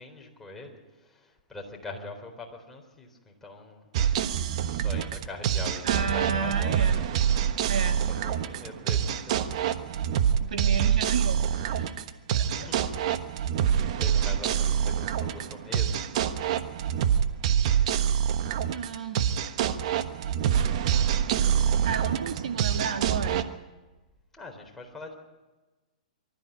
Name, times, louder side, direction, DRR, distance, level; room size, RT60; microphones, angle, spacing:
voice 1, 0.0-3.9 4.6-7.1 7.8-9.6 12.6-13.1 13.6-16.3 24.3-25.1, left 3 dB, 5° left, 1 dB, 3.9 m, -43 dB
sound 1, 3.9-23.4, right 9 dB, 55° right, 1.2 m, -26 dB
voice 2, 5.8-7.0 7.7-8.0 10.4-11.9 12.3-12.6 13.7-13.9 18.7-19.4 21.8-23.5, right 6 dB, 70° right, 6 dB, 1.7 m, -32 dB
24.0 x 13.5 x 9.1 m, 1.2 s
hypercardioid pair, 125°, 4 cm